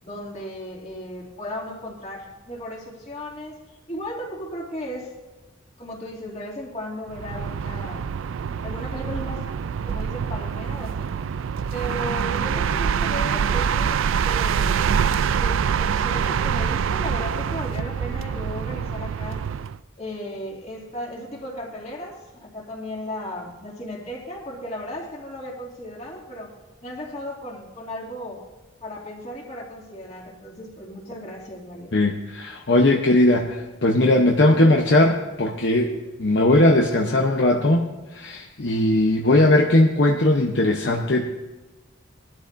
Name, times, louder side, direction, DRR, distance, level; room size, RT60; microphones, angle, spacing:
voice 1, 0.0-3.6 3.9-5.1 5.8-8.1 8.6-9.4 9.9-11.1 11.7-14.9 15.4-19.4 20.0-26.5 26.8-28.4 28.8-31.9, equal, 35° left, -2 dB, 2.5 m, -35 dB
sound 1, 7.1-19.8, right 7 dB, 80° right, 0.4 m, -25 dB
voice 2, 31.9-41.3, left 1 dB, 55° left, 1 dB, 0.9 m, -19 dB
21.0 x 12.0 x 2.6 m, 1.2 s
head